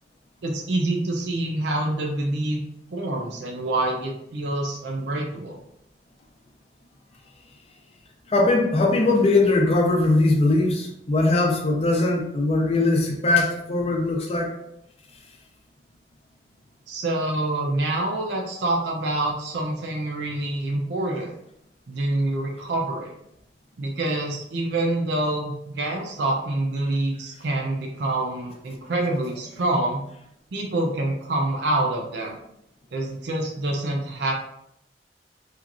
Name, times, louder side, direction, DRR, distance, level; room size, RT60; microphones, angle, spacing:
voice 1, 0.4-2.6 2.9-5.6 16.9-21.3 21.9-23.1 23.8-30.0 30.5-32.3 32.9-34.4, right 2 dB, 65° right, 0 dB, 0.5 m, -26 dB
voice 2, 8.3-14.5, left 2 dB, 35° left, 1 dB, 0.5 m, -20 dB
2.9 x 2.4 x 2.4 m, 0.77 s
head